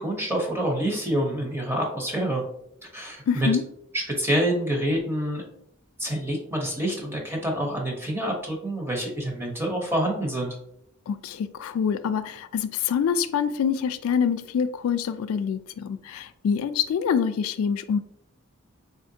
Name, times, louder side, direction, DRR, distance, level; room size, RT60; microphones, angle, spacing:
voice 1, 0.0-2.4 2.9-3.5 3.9-5.4 6.0-10.6, right 1 dB, 10° right, 0.8 m, -27 dB
voice 2, 3.3-3.6 11.1-18.0, left 7 dB, 85° left, 0.3 m, -26 dB
3.8 x 3.3 x 2.7 m
head